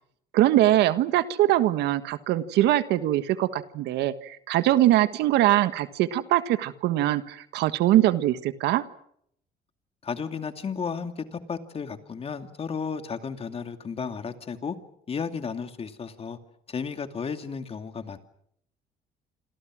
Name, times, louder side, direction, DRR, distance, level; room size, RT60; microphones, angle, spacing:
voice 1, 0.3-8.8, right 14 dB, 85° right, 12 dB, 1.5 m, -22 dB
voice 2, 10.0-14.8 15.1-16.4 16.7-18.2, left 6 dB, 35° left, 8 dB, 2.6 m, -33 dB
27.5 x 27.0 x 6.3 m, 0.70 s
cardioid pair, 110°, 17 cm